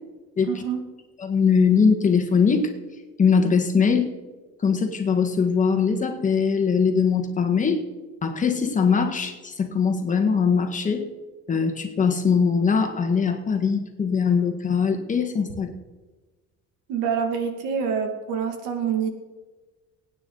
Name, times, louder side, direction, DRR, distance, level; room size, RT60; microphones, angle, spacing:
voice 1, 0.5-0.8 16.9-19.1, right 7 dB, 90° right, 5 dB, 2.4 m, -26 dB
voice 2, 1.2-2.7 3.2-4.1 4.6-7.8 8.2-11.1 11.5-15.7, left 5 dB, 25° left, 4 dB, 1.7 m, -21 dB
22.5 x 9.5 x 4.0 m, 1.2 s
cardioid pair, 140°, 31 cm